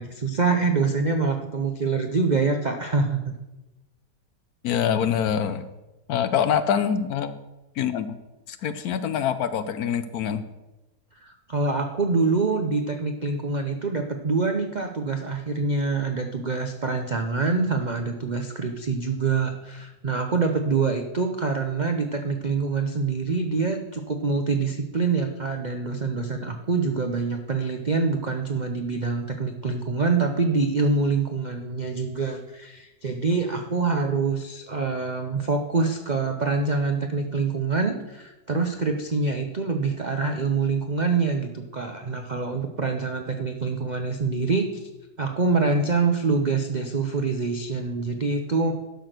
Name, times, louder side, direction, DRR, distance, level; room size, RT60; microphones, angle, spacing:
voice 1, 0.0-3.3 11.2-44.9 45.2-48.7, right 4 dB, 80° right, 5 dB, 0.4 m, -25 dB
voice 2, 4.6-5.7 6.1-7.3 7.8-8.2 8.5-10.4, left 8 dB, 65° left, 12 dB, 1.0 m, -25 dB
11.5 x 6.1 x 6.6 m, 1.1 s
omnidirectional pair, 1.9 m